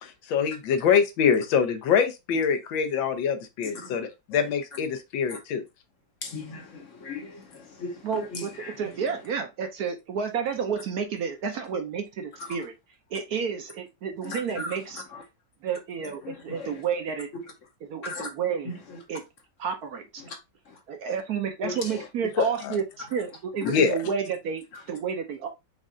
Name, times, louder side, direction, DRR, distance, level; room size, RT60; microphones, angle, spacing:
voice 1, 0.0-5.6 22.4-22.8 23.6-24.0, left 7 dB, 85° left, 1.6 m, -24 dB
voice 2, 3.7-4.1 5.3-5.4 6.2-8.9 12.4-12.6 14.2-14.8 15.1-15.2 16.2-16.8 17.3-17.4 18.0-18.3 18.9-19.0 20.2-20.4 20.7-20.8 21.6-22.1 23.6-23.7, left 3 dB, 55° left, 0.9 m, -38 dB
voice 3, 8.0-8.5 8.8-12.7 13.1-15.0 15.6-17.3 17.8-18.7 19.1-19.2 19.6-20.1 20.9-25.5, right 6 dB, 65° right, 1.0 m, -30 dB
5.4 x 2.4 x 3.7 m
omnidirectional pair, 2.0 m